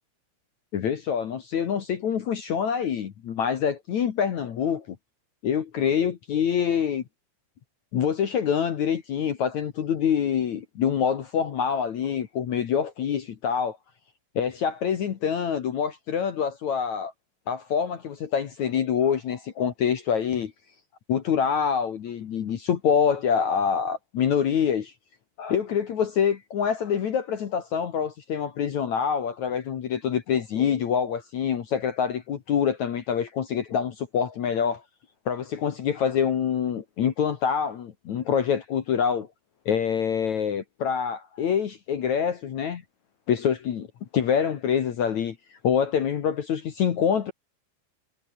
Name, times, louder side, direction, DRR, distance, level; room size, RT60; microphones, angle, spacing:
voice 1, 0.7-4.9 5.4-7.0 7.9-13.8 14.3-17.1 17.5-20.5 21.1-24.9 25.4-34.8 35.2-39.3 39.6-42.8 43.3-43.9 44.1-45.3 45.6-47.3, left 7 dB, 65° left, 1.8 m, -26 dB
omnidirectional pair, 5.8 m